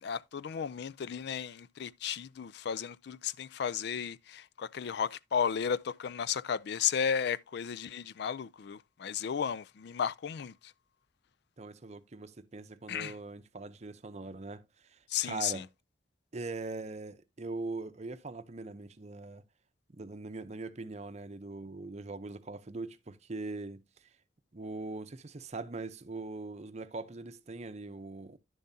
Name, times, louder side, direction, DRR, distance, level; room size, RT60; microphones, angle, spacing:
voice 1, 0.0-10.7 12.9-13.1 15.1-15.6, left 7 dB, 60° left, 0.4 m, -34 dB
voice 2, 11.6-15.7 16.3-19.4 19.9-24.1 24.5-28.4, right 3 dB, 35° right, 0.7 m, -41 dB
10.5 x 7.0 x 2.7 m
head